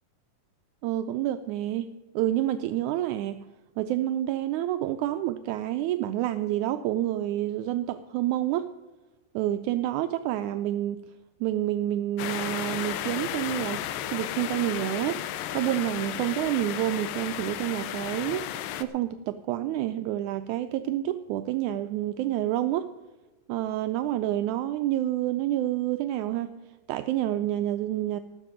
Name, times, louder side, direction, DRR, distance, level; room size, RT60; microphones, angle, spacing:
voice 1, 0.8-3.5 3.8-8.7 9.3-11.0 11.4-13.8 14.1-15.2 15.5-22.9 23.5-26.5 26.9-28.2, right 13 dB, 85° right, 9 dB, 1.7 m, -28 dB
sound 1, 12.2-18.8, left 11 dB, 85° left, 2.4 m, -34 dB
13.5 x 6.9 x 8.7 m, 1.2 s
omnidirectional pair, 3.9 m